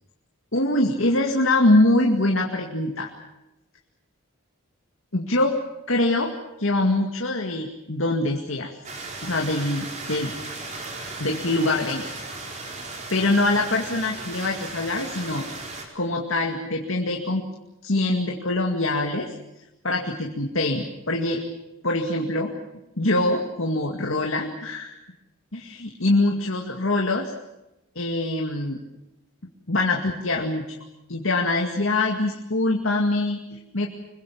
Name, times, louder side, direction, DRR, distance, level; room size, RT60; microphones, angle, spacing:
voice 1, 0.5-3.1 5.1-5.6 5.9-6.3 6.6-8.7 9.2-10.3 11.2-12.0 13.1-15.4 15.9-17.4 17.8-19.3 19.8-21.4 21.8-22.5 23.0-24.9 25.5-27.3 28.0-28.8 29.7-30.6 31.1-33.9, left 2 dB, 65° left, 1 dB, 2.3 m, -23 dB
sound 1, 8.8-15.8, right 3 dB, 35° right, 4.4 m, -36 dB
26.0 x 22.5 x 7.2 m, 0.94 s
head